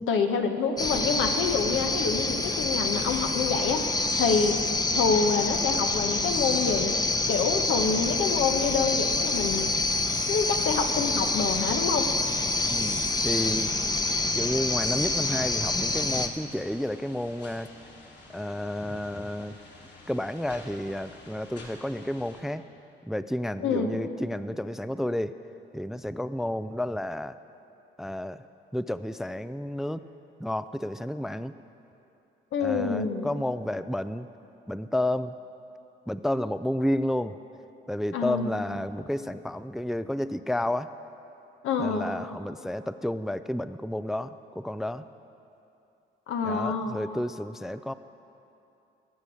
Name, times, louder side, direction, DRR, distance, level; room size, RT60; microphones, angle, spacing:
voice 1, 0.1-3.8 4.2-4.6 4.9-6.9 7.3-9.7 10.3-12.1 23.6-24.0 32.5-33.3 38.1-38.5 41.6-42.1 46.3-46.9, left 5 dB, 80° left, 5 dB, 1.1 m, -27 dB
sound 1, 0.8-16.3, left 2 dB, 20° left, 0.9 m, -27 dB
sound 2, 12.6-22.4, left 2 dB, 60° left, 2.6 m, -50 dB
voice 2, 12.7-13.7 14.3-17.7 18.3-19.6 20.1-22.6 23.0-25.4 25.7-27.4 28.0-28.4 28.7-30.0 30.4-31.6 32.6-34.3 34.7-35.3 36.1-37.4 37.9-40.9 41.8-45.1 46.4-47.9, left 1 dB, ahead, 13 dB, 0.3 m, -31 dB
20.0 x 7.1 x 6.3 m, 2.8 s
cardioid pair, 90°, 20 cm